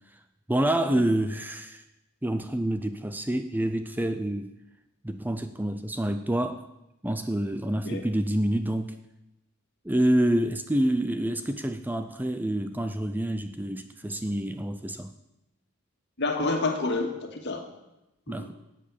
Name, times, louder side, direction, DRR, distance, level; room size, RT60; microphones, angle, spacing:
voice 1, 0.5-1.8 2.2-4.5 5.0-6.7 7.0-9.0 9.8-15.1 18.3-18.5, right 1 dB, 10° right, 9 dB, 0.5 m, -27 dB
voice 2, 7.6-8.0 16.2-17.7 18.3-18.5, left 3 dB, 55° left, 4 dB, 2.1 m, -29 dB
11.0 x 8.4 x 8.5 m, 0.92 s
head